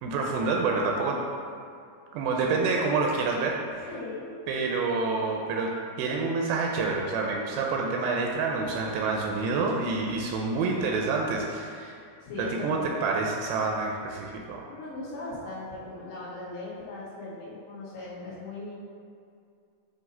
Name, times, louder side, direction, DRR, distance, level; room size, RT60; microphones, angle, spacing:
voice 1, 0.0-1.2 2.1-3.9 4.5-5.7 6.0-12.0 12.4-14.6, right 4 dB, 85° right, 0 dB, 2.6 m, -28 dB
voice 2, 3.9-4.3 10.3-10.5 12.2-12.9 14.7-18.7, left 2 dB, 65° left, -10 dB, 1.6 m, -39 dB
7.8 x 2.7 x 5.4 m, 2.4 s
omnidirectional pair, 5.0 m